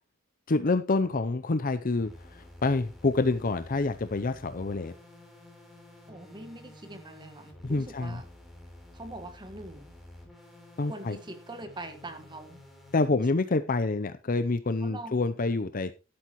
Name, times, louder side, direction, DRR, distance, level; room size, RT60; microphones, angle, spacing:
voice 1, 0.5-4.9 7.6-8.2 10.8-11.2 12.9-15.9, left 3 dB, 45° left, 11 dB, 0.6 m, -27 dB
sound 1, 2.0-13.1, left 1 dB, ahead, 3.6 m, -50 dB
voice 2, 6.1-8.3 8.9-9.9 10.9-12.6 14.8-15.2, right 2 dB, 20° right, 8 dB, 1.6 m, -43 dB
12.0 x 12.0 x 3.0 m, 0.30 s
head